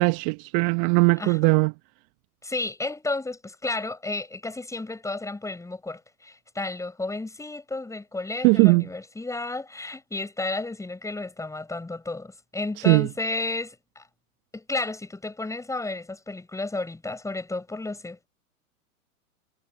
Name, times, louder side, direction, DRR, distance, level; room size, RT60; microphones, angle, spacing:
voice 1, 0.0-1.7 8.4-8.9 12.8-13.1, right 31 dB, 40° right, 1.2 m, -19 dB
voice 2, 1.2-1.5 2.4-14.1 14.5-18.3, left 2 dB, 5° left, 7.6 m, -32 dB
hypercardioid pair, 105°, 44 cm